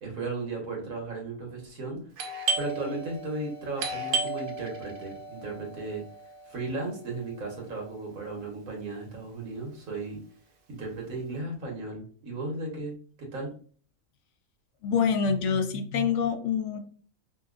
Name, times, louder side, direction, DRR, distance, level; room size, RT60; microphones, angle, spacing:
voice 1, 0.0-2.0 2.5-6.0 6.5-10.2 10.7-13.5, right 2 dB, 90° right, 0 dB, 1.7 m, -35 dB
Doorbell, 2.2-7.6, right 3 dB, 55° right, 0.6 m, -34 dB
voice 2, 14.8-16.8, left 6 dB, 70° left, 7 dB, 0.8 m, -26 dB
5.2 x 2.3 x 2.4 m, 0.43 s
omnidirectional pair, 1.4 m